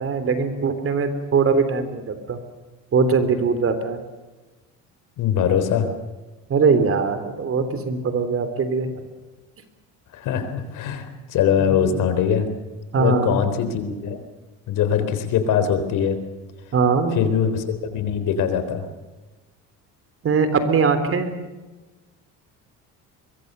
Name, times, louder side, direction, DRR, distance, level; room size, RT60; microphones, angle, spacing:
voice 1, 0.0-2.4 2.9-4.0 6.5-9.0 11.6-11.8 12.9-13.4 16.7-17.2 20.2-21.3, right 5 dB, 45° right, 10 dB, 3.6 m, -21 dB
voice 2, 5.2-5.9 10.1-12.5 12.9-14.2 14.7-16.2 17.1-18.9, left 8 dB, 75° left, 9 dB, 4.0 m, -22 dB
23.5 x 23.0 x 6.9 m, 1.2 s
cardioid pair, 110°, 32 cm